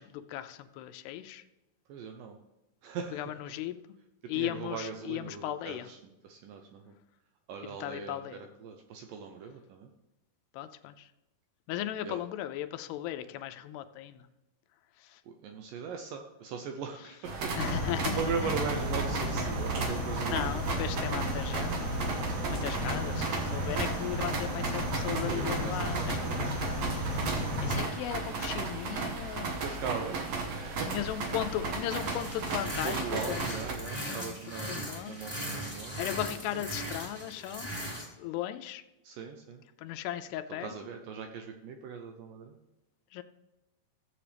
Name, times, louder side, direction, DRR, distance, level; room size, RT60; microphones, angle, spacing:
voice 1, 0.0-1.4 3.1-3.8 4.3-5.9 7.7-8.4 10.5-11.1 11.7-14.3 15.0-15.2 17.6-18.5 20.2-21.9 22.5-26.5 27.0-29.6 30.9-33.5 34.0-34.4 34.6-35.2 36.0-37.7 38.2-38.8 39.8-40.7 43.1-43.2, left 12 dB, 85° left, 10 dB, 2.7 m, -37 dB
voice 2, 1.9-2.4 2.8-3.6 4.2-6.0 6.2-6.9 7.5-9.9 12.0-12.2 15.3-17.6 17.8-20.9 22.4-23.0 25.2-26.6 29.6-30.9 32.7-36.0 36.5-36.6 39.0-39.6 40.6-42.6, right 6 dB, 80° right, 4 dB, 2.0 m, -40 dB
sound 1, 17.2-33.7, right 3 dB, 60° right, 1.8 m, -35 dB
sound 2, 17.6-27.8, equal, 45° right, 4.7 m, -34 dB
sound 3, 31.9-38.1, equal, 15° right, 1.8 m, -39 dB
15.0 x 7.7 x 3.4 m, 1.0 s
omnidirectional pair, 4.6 m